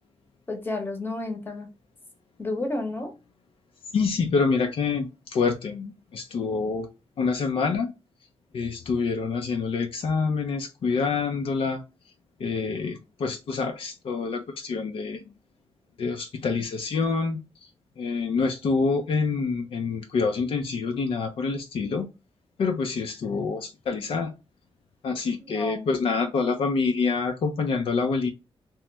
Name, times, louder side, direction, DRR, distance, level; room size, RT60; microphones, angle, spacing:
voice 1, 0.5-1.7 2.4-3.1 25.4-25.9, left 2 dB, 20° left, 0.8 m, -31 dB
voice 2, 3.9-6.9 7.2-7.9 8.5-11.8 12.4-15.3 16.0-17.4 18.0-22.1 22.6-24.3 25.0-28.3, left 4 dB, 65° left, 0.4 m, -26 dB
2.9 x 2.1 x 3.2 m
wide cardioid pair, 150°, 10 cm